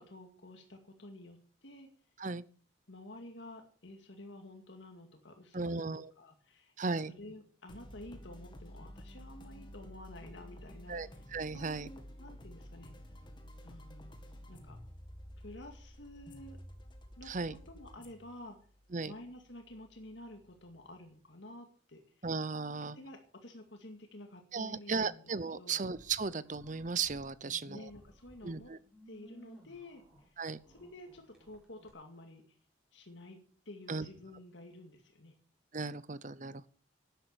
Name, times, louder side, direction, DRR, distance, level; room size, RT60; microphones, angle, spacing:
voice 1, 0.0-1.9 2.9-5.9 6.2-11.2 11.5-13.0 13.6-14.1 14.5-14.8 15.4-16.6 17.2-18.6 19.0-22.3 22.9-25.3 25.6-25.8 27.4-28.7 29.1-30.4 30.7-32.6 32.9-33.4 33.7-35.3, left 1 dB, 70° left, 4 dB, 2.2 m, -51 dB
voice 2, 5.5-6.1 6.8-7.1 10.9-11.9 17.3-17.6 18.9-19.1 22.2-23.0 24.5-27.9 28.4-28.8 30.4-30.6 33.9-34.1 35.7-36.7, right 4 dB, 40° right, 17 dB, 0.7 m, -36 dB
sound 1, 7.7-21.1, equal, 25° left, 2.2 m, -52 dB
sound 2, 25.7-27.3 27.6-31.9, right 1 dB, 5° right, 4.5 m, -59 dB
12.0 x 10.5 x 7.0 m, 0.44 s
head